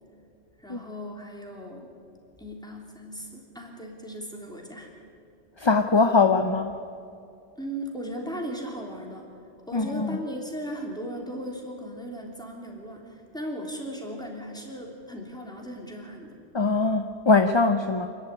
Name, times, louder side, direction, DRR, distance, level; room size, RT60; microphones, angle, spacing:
voice 1, 0.6-1.9 2.4-5.0 7.6-9.3 9.7-16.3, equal, 5° left, -1 dB, 3.3 m, -37 dB
voice 2, 5.6-6.8 9.7-10.2 16.5-18.1, left 3 dB, 30° left, 7 dB, 0.7 m, -22 dB
26.5 x 11.0 x 10.0 m, 2.5 s
omnidirectional pair, 1.2 m